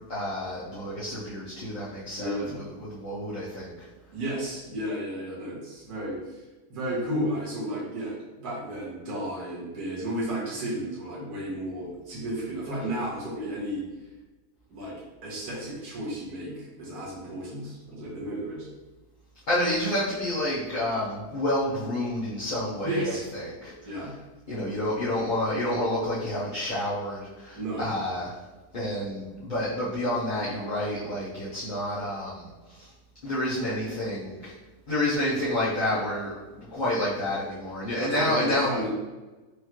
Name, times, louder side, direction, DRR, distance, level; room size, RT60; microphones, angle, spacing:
voice 1, 0.1-3.9 19.5-23.7 24.5-28.3 28.7-32.9 33.2-34.5 34.9-38.8, left 1 dB, 40° left, -10 dB, 0.8 m, -29 dB
voice 2, 2.2-2.6 4.1-6.4 6.7-8.2 8.4-13.8 14.7-15.0 15.2-18.7 22.8-23.3 23.9-24.1 27.5-27.9 38.0-38.9, right 1 dB, 70° right, -6 dB, 1.8 m, -33 dB
4.8 x 2.7 x 3.0 m, 1.2 s
omnidirectional pair, 1.8 m